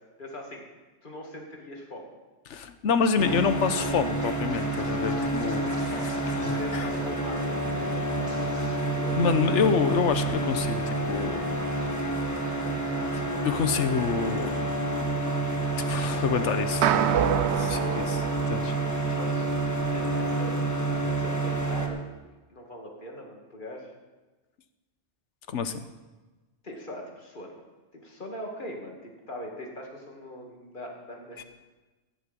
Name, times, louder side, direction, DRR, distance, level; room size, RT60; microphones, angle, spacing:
voice 1, 0.2-0.6 1.0-2.1 5.2-9.5 18.8-19.5 19.9-20.6 21.0-22.0 22.5-23.9 26.6-27.6 27.9-31.4, left 1 dB, 45° left, 0 dB, 2.5 m, -41 dB
voice 2, 2.5-5.7 6.4-6.9 9.2-11.4 13.4-14.6 15.9-18.2 18.5-18.7 19.1-19.2 25.5-25.8 31.4-31.5, left 6 dB, 80° left, 10 dB, 1.2 m, -27 dB
sound 1, 3.2-21.9, right 2 dB, 15° left, 1.4 m, -28 dB
Scratching (performance technique), 4.2-7.5 7.8-8.0 8.3-8.8, right 1 dB, 20° right, 2.5 m, -47 dB
sound 2, 16.8-19.3, right 10 dB, 70° right, 0.9 m, -27 dB
15.5 x 9.9 x 5.3 m, 1.2 s
omnidirectional pair, 1.2 m